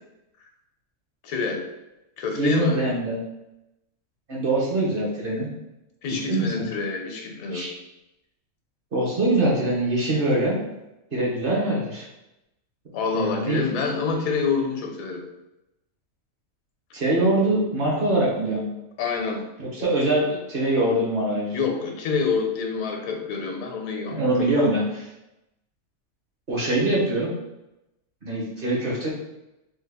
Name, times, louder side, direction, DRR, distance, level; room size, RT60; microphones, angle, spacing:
voice 1, 1.2-1.6 2.2-2.8 6.0-7.6 12.9-15.2 19.0-19.5 19.8-19.9 21.5-24.7, left 5 dB, 80° left, 3 dB, 1.0 m, -27 dB
voice 2, 2.3-3.2 4.3-5.5 6.3-6.7 7.5-7.7 8.9-10.6 11.1-12.0 13.1-13.6 16.9-18.6 19.6-21.7 24.1-25.0 26.5-27.3 28.2-29.1, right 1 dB, 50° right, -4 dB, 0.8 m, -23 dB
3.3 x 2.1 x 3.4 m, 0.93 s
omnidirectional pair, 1.4 m